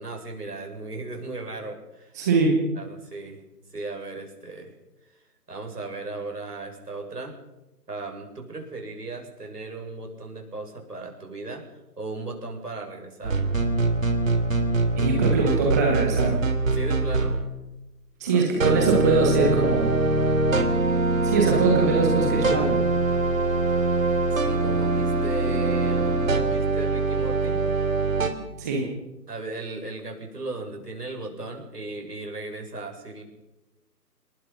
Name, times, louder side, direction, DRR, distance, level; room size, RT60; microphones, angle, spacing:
voice 1, 0.0-2.2 2.7-3.4 3.7-4.7 5.1-5.2 5.5-7.4 7.9-13.4 16.7-17.4 18.2-18.5 24.3-27.6 29.3-33.2, right 2 dB, 70° right, 2 dB, 7.7 m, -36 dB
voice 2, 2.1-2.6 14.9-16.4 18.2-20.0 21.2-22.8 28.6-28.9, right 4 dB, 10° right, 1 dB, 1.3 m, -22 dB
sound 1, 13.2-17.5 18.6-28.3, right 3 dB, 50° right, 3.4 m, -23 dB
27.5 x 20.0 x 5.5 m, 0.99 s
figure-of-eight pair, 155°, 49 cm